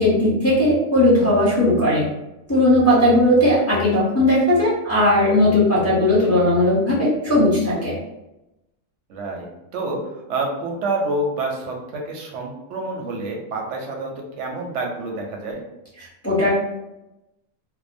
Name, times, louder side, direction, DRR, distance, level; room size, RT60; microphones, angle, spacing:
voice 1, 0.0-2.0 2.5-7.9 16.2-16.5, left 1 dB, 15° left, -9 dB, 0.5 m, -17 dB
voice 2, 9.1-9.5 9.7-10.0 10.3-15.6, right 2 dB, 65° right, 1 dB, 0.8 m, -28 dB
2.7 x 2.0 x 2.5 m, 0.93 s
omnidirectional pair, 1.5 m